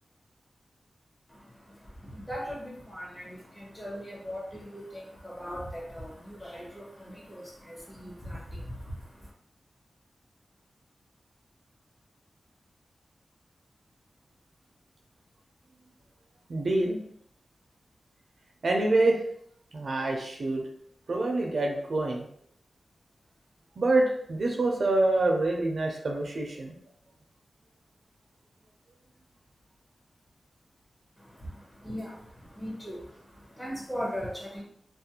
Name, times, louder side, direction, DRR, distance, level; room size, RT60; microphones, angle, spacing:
voice 1, 1.3-9.3 31.2-34.6, equal, 15° left, -3 dB, 0.8 m, -39 dB
voice 2, 16.5-17.0 18.6-19.2 19.7-20.6 21.1-22.3 23.8-26.7, right 2 dB, 65° right, 1 dB, 0.4 m, -26 dB
2.4 x 2.0 x 2.8 m, 0.66 s
wide cardioid pair, 95°, 0 cm